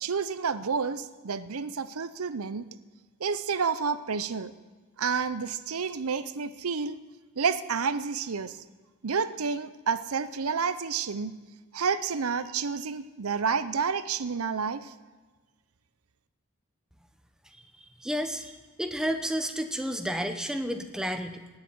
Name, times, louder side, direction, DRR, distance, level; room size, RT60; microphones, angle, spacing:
voice 1, 0.0-2.6 3.2-4.5 5.0-7.0 7.4-8.6 9.0-11.4 11.7-14.9, right 5 dB, 85° right, 14 dB, 0.7 m, -30 dB
voice 2, 18.0-18.5 18.8-21.4, equal, 5° right, 7 dB, 0.9 m, -31 dB
17.5 x 7.4 x 9.5 m, 1.3 s
head